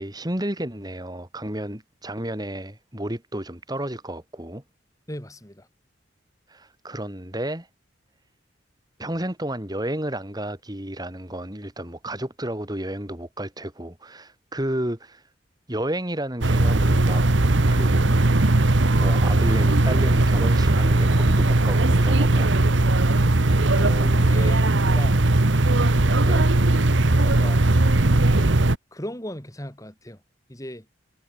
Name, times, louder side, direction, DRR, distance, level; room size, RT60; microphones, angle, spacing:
voice 1, 0.0-4.6 6.5-7.7 9.0-15.2 15.7-17.2 17.7-18.2 18.9-22.6 26.2-26.4, right 1 dB, 20° right, 3.0 m, -32 dB
voice 2, 5.1-5.7 23.1-23.4 23.8-25.2 26.3-26.8 27.1-27.6 28.9-30.2 30.5-30.9, left 1 dB, 15° left, 4.4 m, -37 dB
sound 1, 16.4-28.8, right 2 dB, 75° right, 1.3 m, -19 dB
head